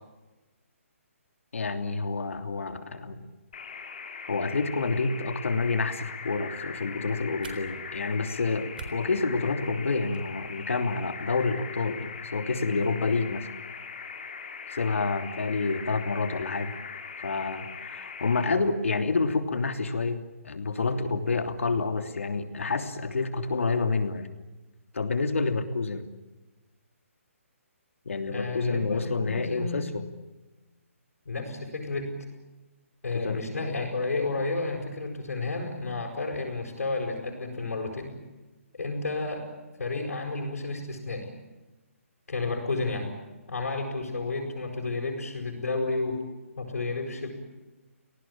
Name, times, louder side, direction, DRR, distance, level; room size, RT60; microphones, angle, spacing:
voice 1, 1.5-3.3 3.8-4.0 4.2-13.5 14.7-16.8 17.2-24.3 24.9-26.1 28.0-30.0 33.1-33.4, left 4 dB, 65° left, 7 dB, 3.1 m, -28 dB
sound 1, 3.5-18.5, left 6 dB, 35° left, 3.2 m, -41 dB
sound 2, 6.3-10.3, right 4 dB, 40° right, 3.9 m, -49 dB
voice 2, 28.3-29.8 31.2-32.1 33.0-38.1 38.7-39.5 39.8-41.3 42.3-43.1 43.5-46.3 46.6-47.3, left 3 dB, 90° left, 0 dB, 7.2 m, -31 dB
30.0 x 19.0 x 8.9 m, 1.1 s
hypercardioid pair, 180°, 8 cm